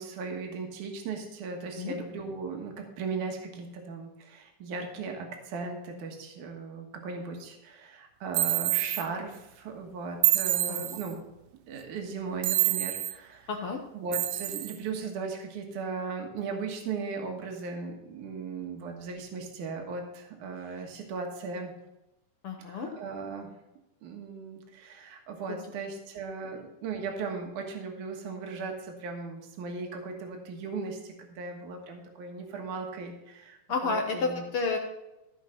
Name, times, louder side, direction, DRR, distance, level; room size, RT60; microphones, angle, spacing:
voice 1, 0.0-11.2 11.7-13.5 13.9-21.7 22.6-23.5 24.0-34.4, right 4 dB, 70° right, 3 dB, 2.8 m, -37 dB
sound 1, 8.3-9.1 10.2-11.1 12.4-13.1 14.1-14.8, right 15 dB, 85° right, 2.3 m, -27 dB
voice 2, 13.5-13.8 22.4-22.9 25.5-25.6 33.7-34.8, left 4 dB, 70° left, 3 dB, 1.3 m, -30 dB
15.0 x 5.1 x 5.7 m, 0.97 s
omnidirectional pair, 3.8 m